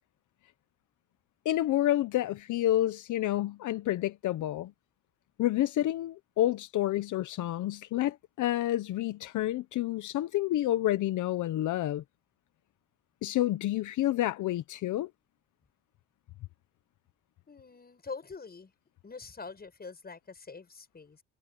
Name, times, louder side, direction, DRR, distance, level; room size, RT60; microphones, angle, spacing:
voice 1, 1.4-4.7 5.4-12.0 13.2-15.1, left 14 dB, 80° left, 0.9 m, -29 dB
voice 2, 17.5-18.7 19.0-21.2, left 4 dB, 30° left, 7.6 m, -44 dB
cardioid pair, 90°, 30 cm